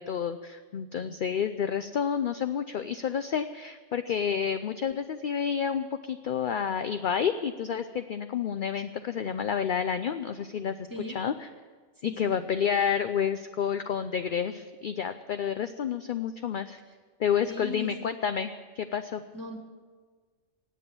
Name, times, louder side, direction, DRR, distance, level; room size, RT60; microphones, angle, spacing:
voice 1, 0.0-11.5 12.0-16.8 17.2-18.5 18.8-19.2, left 7 dB, 55° left, 10 dB, 0.6 m, -30 dB
voice 2, 12.0-12.4 16.9-17.0 17.5-17.9 19.3-19.6, left 1 dB, 15° right, 3 dB, 2.1 m, -38 dB
18.5 x 7.9 x 8.8 m, 1.5 s
omnidirectional pair, 1.3 m